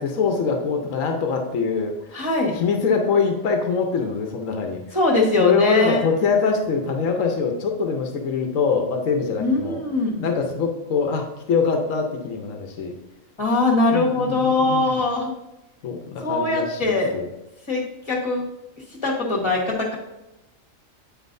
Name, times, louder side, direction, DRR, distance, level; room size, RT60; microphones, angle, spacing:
voice 1, 0.0-2.2 2.5-5.0 5.4-9.8 10.2-12.9 13.9-15.0 15.8-17.3, left 5 dB, 80° left, 3 dB, 1.2 m, -23 dB
voice 2, 2.1-2.6 4.9-6.0 9.4-10.2 13.4-15.3 16.2-17.1 17.7-18.4 19.0-19.9, left 2 dB, 20° left, -2 dB, 1.5 m, -21 dB
9.2 x 4.5 x 2.6 m, 0.97 s
omnidirectional pair, 1.3 m